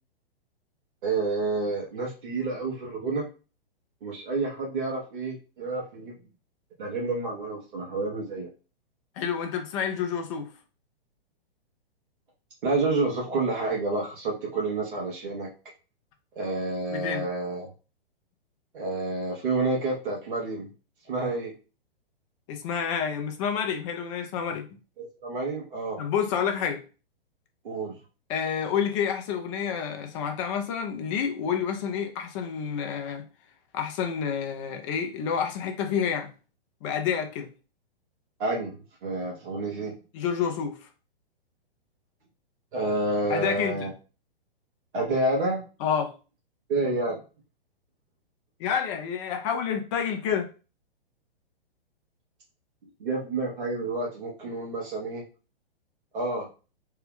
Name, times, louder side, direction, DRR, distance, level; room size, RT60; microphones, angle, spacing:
voice 1, 1.0-3.3 4.0-6.1 6.8-8.5 12.6-15.5 16.3-17.7 18.7-20.7 21.1-21.5 25.0-26.0 27.6-27.9 38.4-40.0 42.7-43.9 44.9-45.6 46.7-47.2 53.0-55.2 56.1-56.5, right 2 dB, 60° right, 1.2 m, -29 dB
voice 2, 9.2-10.5 16.9-17.3 22.5-24.7 26.0-26.8 28.3-33.2 33.7-36.3 36.8-37.5 40.1-40.9 43.3-43.9 45.8-46.1 48.6-50.5, left 7 dB, 30° left, 0.7 m, -29 dB
3.4 x 2.2 x 3.6 m
figure-of-eight pair, 115°, 30 cm